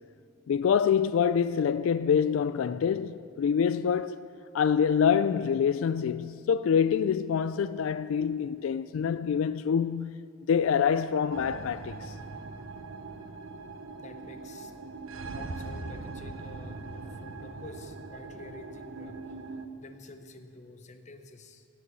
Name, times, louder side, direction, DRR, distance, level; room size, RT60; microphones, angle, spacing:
voice 1, 0.5-4.3 4.5-12.1, left 7 dB, 85° left, 0.3 m, -26 dB
sound 1, 11.3-19.7, right 3 dB, 90° right, 0.9 m, -41 dB
voice 2, 14.0-14.7 15.3-21.7, left 2 dB, 35° left, 0.8 m, -49 dB
17.0 x 6.8 x 7.6 m
head